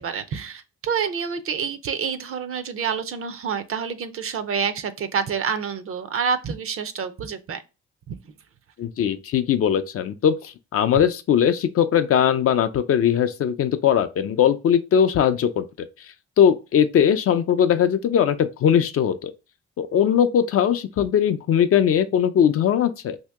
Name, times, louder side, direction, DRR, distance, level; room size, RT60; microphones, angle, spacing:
voice 1, 0.0-7.6 8.1-8.2, right 6 dB, 45° right, 0.5 m, -28 dB
voice 2, 8.8-15.9 16.4-19.3 19.8-23.2, left 8 dB, 50° left, 0.4 m, -20 dB
2.8 x 2.7 x 3.4 m
cardioid pair, 90°, 30 cm